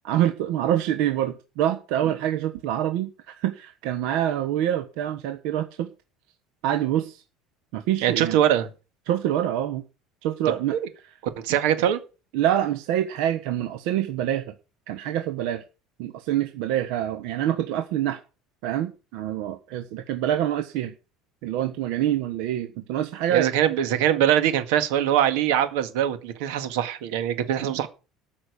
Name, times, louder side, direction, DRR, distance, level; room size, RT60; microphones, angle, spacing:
voice 1, 0.0-5.9 6.6-7.2 7.7-8.4 9.1-9.8 10.2-10.8 12.3-14.5 14.9-15.6 16.0-18.2 18.6-20.9 21.4-23.5 27.6-27.7, right 11 dB, 70° right, 8 dB, 1.1 m, -26 dB
voice 2, 8.0-8.7 10.7-10.8 11.4-12.0 23.3-27.9, right 10 dB, 85° right, 10 dB, 1.9 m, -22 dB
13.0 x 5.8 x 8.2 m, 0.33 s
cardioid pair, 165°, 0 cm